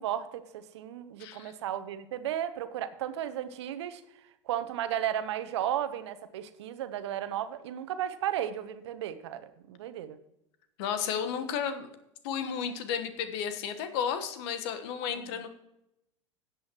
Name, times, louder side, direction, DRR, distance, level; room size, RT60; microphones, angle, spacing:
voice 1, 0.0-4.0 4.5-10.2, right 11 dB, 70° right, 12 dB, 0.9 m, -34 dB
voice 2, 1.2-1.5 10.8-11.9 12.2-15.5, left 7 dB, 60° left, 9 dB, 1.3 m, -33 dB
17.5 x 8.0 x 3.0 m, 0.85 s
hypercardioid pair, 80°, 15 cm